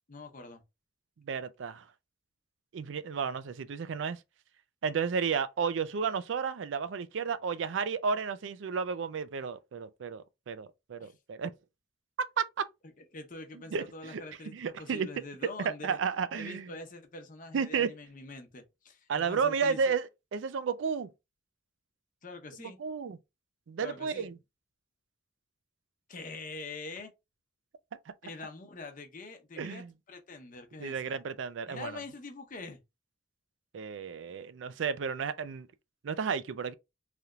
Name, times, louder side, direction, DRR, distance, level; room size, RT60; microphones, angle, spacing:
voice 1, 0.1-0.6 11.0-11.1 13.1-16.0 16.3-19.9 22.2-22.8 23.8-24.3 26.1-27.1 28.2-31.1 31.7-32.8, left 3 dB, 45° left, 0.8 m, -44 dB
voice 2, 1.2-1.8 2.7-4.2 4.8-11.5 12.4-12.7 13.7-14.2 14.5-15.1 15.6-16.7 17.5-17.9 19.1-20.0 20.3-21.1 22.8-23.2 23.7-24.4 29.6-29.9 30.8-31.9 33.7-35.7 36.0-36.7, right 6 dB, 85° right, 0.4 m, -32 dB
3.3 x 2.8 x 2.3 m
head